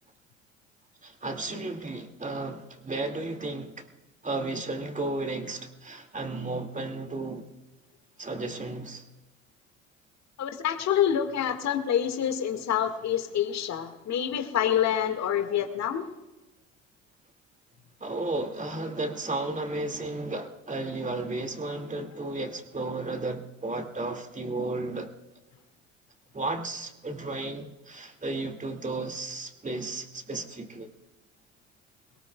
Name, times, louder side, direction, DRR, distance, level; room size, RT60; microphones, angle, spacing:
voice 1, 1.0-3.8 4.2-7.5 8.2-9.0 18.0-25.1 26.3-30.9, right 2 dB, 20° right, 6 dB, 2.1 m, -33 dB
voice 2, 10.4-16.1, left 9 dB, 45° left, 8 dB, 1.8 m, -27 dB
21.5 x 19.0 x 2.3 m, 1.1 s
hypercardioid pair, 65°, 37 cm